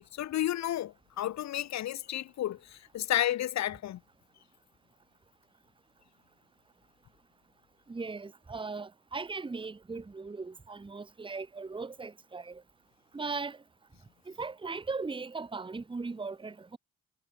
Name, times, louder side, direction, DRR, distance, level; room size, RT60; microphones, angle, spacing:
voice 1, 0.0-4.0, left 12 dB, 65° left, 0.9 m, -32 dB
voice 2, 7.9-12.6 13.1-13.6 14.3-16.8, right 4 dB, 15° right, 1.1 m, -38 dB
cardioid pair, 90°, 30 cm